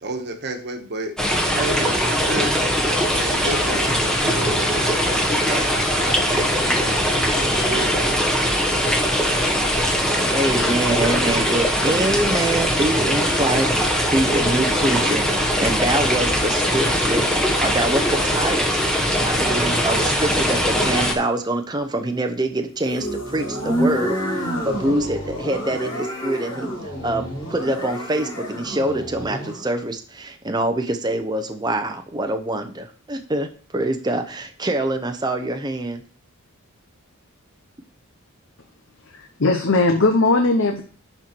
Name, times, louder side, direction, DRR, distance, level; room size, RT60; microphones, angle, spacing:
voice 1, 0.0-2.5 3.1-8.3, right 2 dB, 50° right, 5 dB, 1.4 m, -32 dB
sound 1, 1.2-21.1, equal, 5° left, 1.2 m, -21 dB
voice 2, 10.3-17.3 17.6-18.7 19.2-26.7 27.0-36.0, right 1 dB, 20° right, 6 dB, 0.7 m, -25 dB
sound 2, 22.8-29.6, equal, 20° left, 4.5 m, -28 dB
voice 3, 39.1-40.8, left 2 dB, 60° left, 5 dB, 0.8 m, -18 dB
11.0 x 4.5 x 4.5 m, 0.43 s
head